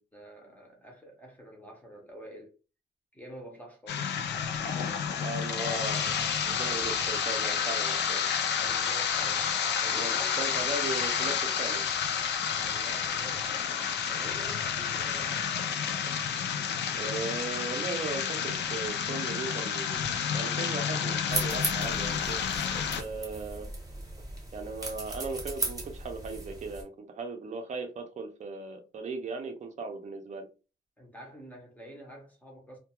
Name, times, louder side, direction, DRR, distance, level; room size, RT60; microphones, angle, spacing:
voice 1, 0.0-2.5 3.1-6.2 8.6-9.5 9.8-10.4 12.5-13.6 14.1-15.5 31.0-32.8, equal, 10° left, 0.6 m, -48 dB
sound 1, 3.9-23.0, left 7 dB, 70° left, 0.4 m, -30 dB
voice 2, 5.2-6.1 6.5-8.3 10.0-10.1 10.4-11.8 16.9-20.0 20.3-22.5 22.8-23.7 24.5-30.5, right 3 dB, 40° right, 0.5 m, -37 dB
sound 2, 21.3-26.8, right 2 dB, 20° right, 0.8 m, -37 dB
2.3 x 2.2 x 2.9 m
wide cardioid pair, 170°, 18 cm